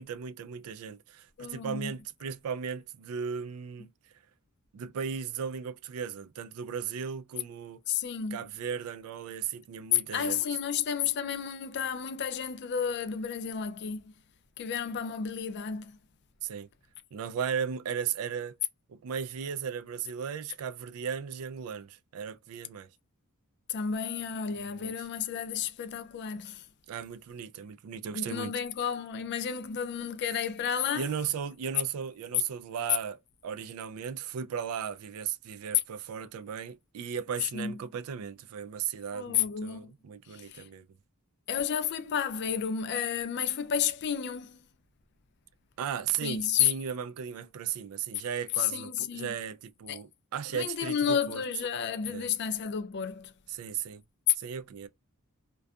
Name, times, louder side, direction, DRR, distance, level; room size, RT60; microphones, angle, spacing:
voice 1, 0.0-3.9 4.7-7.8 8.3-10.4 16.4-16.7 17.1-18.6 18.9-22.9 24.5-24.9 26.9-28.5 30.9-40.8 45.8-51.4 52.1-52.3 53.5-54.0 54.4-54.9, right 7 dB, 70° right, 0.3 m, -36 dB
voice 2, 1.4-1.9 7.9-8.4 9.9-14.1 14.6-16.0 23.7-26.7 28.1-31.1 37.5-37.7 39.1-39.9 40.3-40.6 41.5-44.6 46.2-46.7 48.6-49.4 49.9-50.0 50.5-53.3, left 8 dB, 50° left, 0.4 m, -31 dB
2.6 x 2.3 x 2.2 m
head